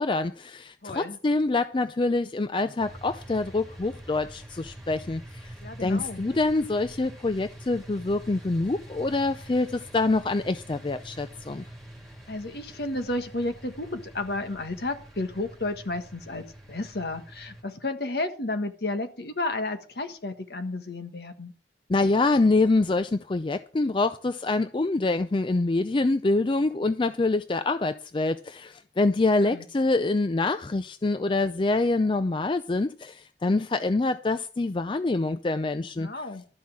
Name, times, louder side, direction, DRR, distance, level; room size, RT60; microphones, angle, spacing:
voice 1, 0.0-5.5 5.8-11.6 21.9-36.2, left 2 dB, 30° left, 0.4 m, -25 dB
voice 2, 0.8-1.2 5.6-6.2 12.3-21.5 29.4-29.6 36.0-36.4, left 2 dB, 60° left, 1.5 m, -32 dB
sound 1, 2.8-17.6, right 1 dB, ahead, 3.0 m, -46 dB
12.5 x 5.7 x 7.4 m
head